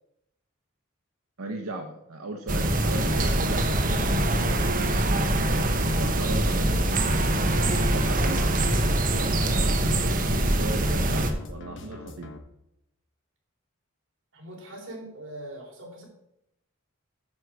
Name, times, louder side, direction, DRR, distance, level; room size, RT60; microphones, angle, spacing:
voice 1, 1.4-4.5 5.2-6.8 7.9-8.4 9.1-12.3, right 2 dB, 85° right, 3 dB, 0.8 m, -37 dB
sound 1, 2.5-12.4, left 2 dB, 60° left, 0.9 m, -43 dB
sound 2, 2.5-11.3, right 1 dB, 40° right, 0.9 m, -24 dB
voice 2, 5.5-5.9 14.3-16.0, right 1 dB, 60° right, -3 dB, 3.5 m, -41 dB
9.8 x 6.4 x 4.6 m, 0.83 s
head